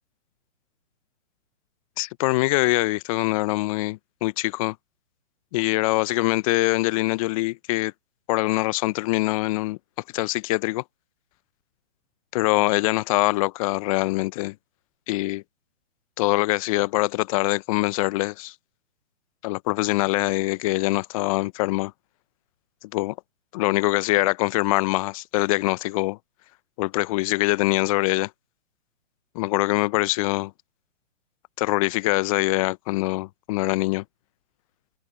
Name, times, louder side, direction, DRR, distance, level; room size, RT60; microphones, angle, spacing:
voice 1, 2.0-4.8 5.5-7.9 8.3-9.8 10.1-10.8 12.3-14.5 15.1-15.4 16.2-18.5 19.4-21.9 22.8-23.1 23.5-26.2 26.8-28.3 29.3-30.5 31.6-34.0, left 21 dB, 25° left, 0.8 m, -23 dB
figure-of-eight pair, 125°, 39 cm